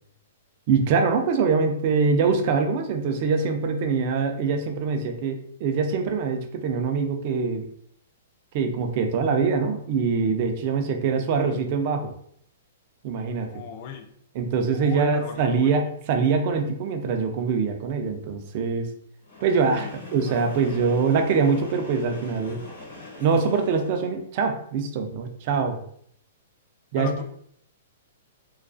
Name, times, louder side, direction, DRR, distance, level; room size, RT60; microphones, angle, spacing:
voice 1, 0.7-7.7 8.5-12.1 13.0-13.5 14.3-18.9 19.4-22.6 23.2-25.8 26.9-27.1, right 5 dB, 40° right, 5 dB, 0.3 m, -24 dB
voice 2, 13.5-14.1 14.7-15.8 19.5-20.6 27.0-27.2, left 7 dB, 40° left, 5 dB, 0.3 m, -38 dB
Train, 19.2-24.2, left 2 dB, 75° left, 1.0 m, -43 dB
2.3 x 2.3 x 2.4 m, 0.66 s
hypercardioid pair, 160°, 0 cm